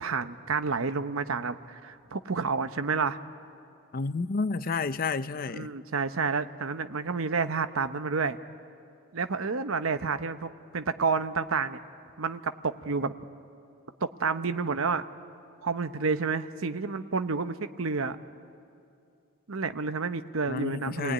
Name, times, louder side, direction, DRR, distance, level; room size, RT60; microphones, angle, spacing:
voice 1, 0.0-3.2 5.5-8.4 9.1-11.8 12.2-13.1 14.0-15.0 15.6-18.2 19.5-21.1, right 4 dB, 80° right, 0.9 m, -30 dB
voice 2, 3.9-5.7 20.5-21.1, left 4 dB, 45° left, 0.5 m, -30 dB
27.5 x 19.5 x 9.6 m
head